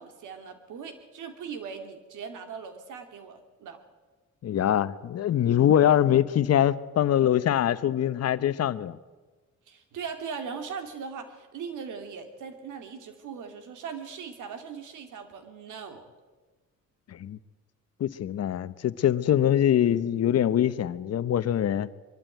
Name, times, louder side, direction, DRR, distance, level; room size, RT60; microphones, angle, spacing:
voice 1, 0.0-3.8 9.7-16.0, right 6 dB, 80° right, 2.7 m, -39 dB
voice 2, 4.4-9.0 17.1-17.4 18.0-21.9, left 10 dB, 55° left, 0.9 m, -23 dB
23.0 x 12.5 x 9.2 m
cardioid pair, 90°, 30 cm